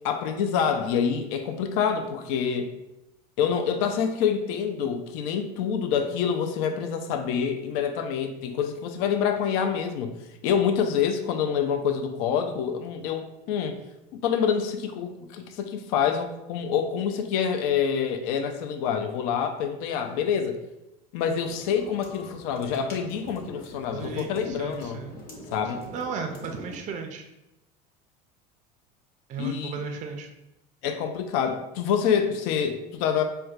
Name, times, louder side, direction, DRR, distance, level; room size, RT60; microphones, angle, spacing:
voice 1, 0.0-2.7 3.4-10.2 10.4-13.8 14.1-20.6 21.1-25.0 25.5-25.8 29.4-29.8 30.8-33.2, left 7 dB, 70° left, 6 dB, 0.4 m, -26 dB
sound 1, 21.4-26.8, left 1 dB, 45° left, 1.0 m, -44 dB
voice 2, 23.9-25.2 25.9-27.2 29.3-30.3, right 5 dB, 40° right, 4 dB, 0.4 m, -35 dB
4.2 x 2.2 x 2.4 m, 0.93 s
supercardioid pair, 100°, 20 cm